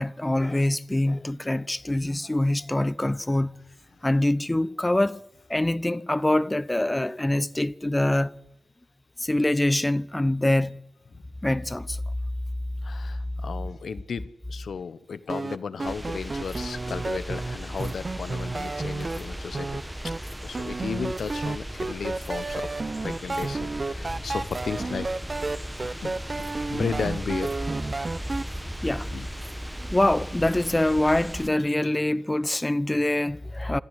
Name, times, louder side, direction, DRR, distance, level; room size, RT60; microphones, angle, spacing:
voice 1, 0.0-3.6 4.0-5.2 5.5-8.3 9.2-10.8 11.4-12.0 28.8-29.1 29.9-33.8, left 1 dB, 15° left, 0.8 m, -24 dB
voice 2, 12.8-19.7 20.0-20.2 20.4-22.8 23.0-25.1 26.0-26.4 26.7-27.5 29.1-29.3 31.7-31.9, left 5 dB, 75° left, 1.2 m, -34 dB
sound 1, 15.3-19.2 19.5-20.2 20.5-28.4, right 3 dB, 35° right, 0.8 m, -31 dB
sound 2, 15.8-31.5, equal, 5° right, 1.3 m, -37 dB
27.0 x 14.0 x 8.3 m
wide cardioid pair, 95°, 0 cm